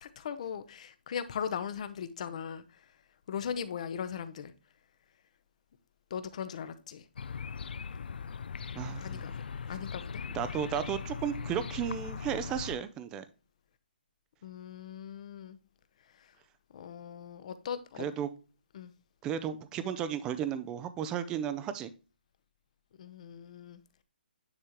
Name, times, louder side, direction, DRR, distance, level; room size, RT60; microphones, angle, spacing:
voice 1, 0.0-2.6 3.3-4.5 6.1-7.0 9.0-9.3 9.7-10.2 14.4-15.6 16.7-18.1 18.7-18.9 23.0-23.8, left 7 dB, 40° left, 0.7 m, -39 dB
sound 1, 7.2-12.8, left 6 dB, 65° left, 0.3 m, -39 dB
voice 2, 8.8-9.2 10.3-13.2 18.0-18.3 19.2-21.9, right 9 dB, 10° right, 0.4 m, -34 dB
9.7 x 3.6 x 3.0 m
hypercardioid pair, 165°, 6 cm